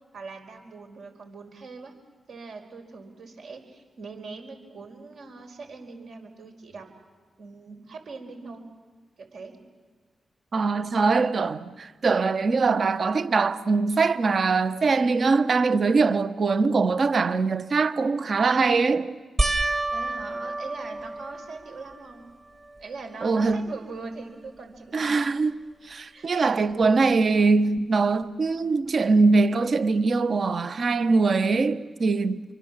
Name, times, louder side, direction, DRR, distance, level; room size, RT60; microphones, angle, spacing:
voice 1, 0.1-1.9 2.3-6.9 7.4-8.7 9.2-9.5 19.9-22.3 22.8-25.1 26.1-26.3, right 4 dB, 75° right, 4.9 m, -41 dB
voice 2, 10.5-19.1 23.2-23.6 24.9-32.5, right 4 dB, 60° right, 1.2 m, -22 dB
sound 1, 19.4-22.0 22.6-23.2 23.5-23.6 26.8-26.9, right 2 dB, 40° right, 2.2 m, -29 dB
28.0 x 24.5 x 7.4 m
supercardioid pair, 45°, 0 cm